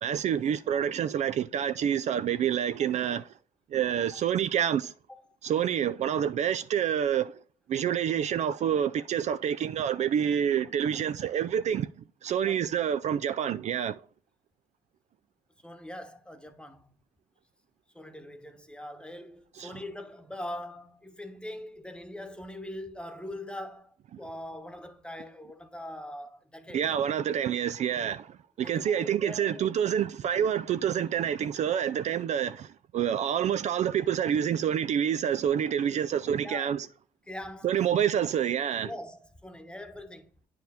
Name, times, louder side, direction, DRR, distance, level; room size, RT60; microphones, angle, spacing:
voice 1, 0.0-3.3 3.7-4.9 5.4-7.4 7.7-14.0 19.6-19.7 26.7-36.9 37.6-38.9, right 9 dB, 50° right, 0.4 m, -28 dB
voice 2, 12.4-12.7 15.6-16.9 17.9-26.9 28.6-29.6 36.4-36.8 37.3-37.7 38.8-40.3, left 1 dB, 5° left, 1.1 m, -42 dB
9.1 x 4.7 x 3.5 m
supercardioid pair, 65°, 15 cm